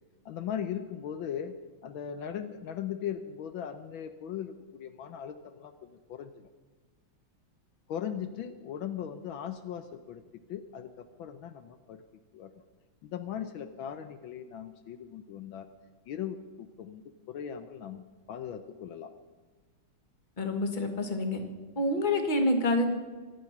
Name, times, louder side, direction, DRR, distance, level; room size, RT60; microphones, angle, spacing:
voice 1, 0.2-1.5 1.8-6.5 7.9-12.0 12.3-12.5 13.0-15.7 16.1-19.1, left 9 dB, 75° left, 10 dB, 1.5 m, -39 dB
voice 2, 20.4-21.4 21.7-22.9, left 1 dB, 25° left, 5 dB, 1.6 m, -27 dB
24.5 x 9.4 x 5.9 m, 1.3 s
omnidirectional pair, 2.3 m